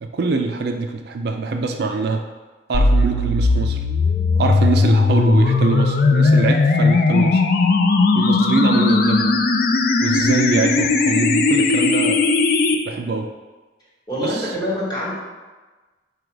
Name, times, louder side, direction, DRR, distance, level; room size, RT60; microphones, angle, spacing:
voice 1, 0.0-2.2 2.7-3.8 4.4-7.4 8.1-9.4 10.0-12.2 12.8-13.3 14.2-14.4, right 4 dB, 60° right, 5 dB, 0.4 m, -23 dB
sound 1, 2.7-12.8, left 3 dB, 55° left, 0.4 m, -17 dB
voice 2, 14.1-15.1, equal, 25° left, -7 dB, 1.4 m, -25 dB
5.0 x 2.3 x 4.5 m, 1.3 s
head